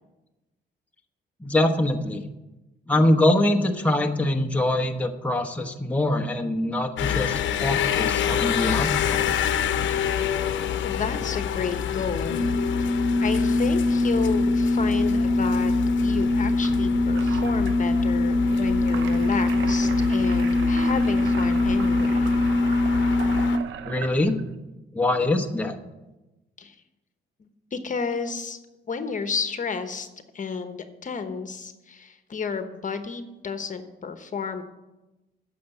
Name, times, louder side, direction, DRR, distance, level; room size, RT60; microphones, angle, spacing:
voice 1, 1.4-2.2 2.9-9.3 23.8-24.4 24.9-25.8, left 1 dB, 5° left, 3 dB, 1.0 m, -23 dB
sound 1, 7.0-23.6, left 3 dB, 70° left, 0.9 m, -23 dB
voice 2, 10.8-12.4 13.2-15.7 16.0-22.3 26.6-26.7 27.4-28.6 28.9-30.1 30.3-34.6, left 5 dB, 40° left, 9 dB, 1.1 m, -31 dB
sound 2, 14.8-24.6, right 8 dB, 75° right, 0.7 m, -39 dB
9.5 x 7.1 x 9.0 m, 1.0 s
cardioid pair, 90°, 20 cm